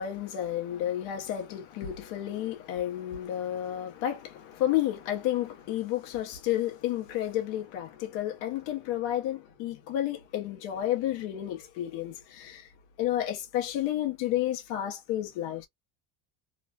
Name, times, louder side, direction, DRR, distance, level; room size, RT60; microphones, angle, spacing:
voice 1, 0.0-12.7 13.0-15.7, left 12 dB, 75° left, 1.0 m, -31 dB
3.1 x 2.1 x 2.3 m
cardioid pair, 155°, 45 cm